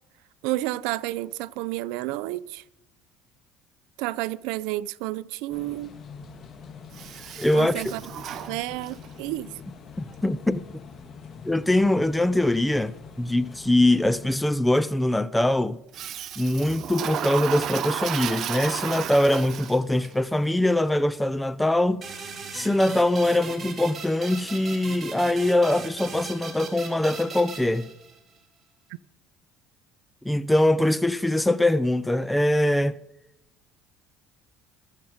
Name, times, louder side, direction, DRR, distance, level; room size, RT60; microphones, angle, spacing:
voice 1, 0.4-2.6 4.0-5.9 7.5-8.0 8.5-9.5, right 17 dB, 80° right, 0.5 m, -30 dB
sound 1, 5.5-14.5, left 5 dB, 45° left, 1.6 m, -44 dB
Toilet flush, 6.9-9.2 15.9-20.1, right 10 dB, 50° right, 0.8 m, -33 dB
voice 2, 7.4-7.8 10.0-10.6 11.4-15.8 16.4-22.1 22.5-27.9 30.2-33.0, left 1 dB, 5° left, 0.5 m, -23 dB
sound 2, 22.0-28.4, right 5 dB, 30° right, 3.0 m, -39 dB
21.5 x 7.4 x 5.1 m
supercardioid pair, 105°, 0 cm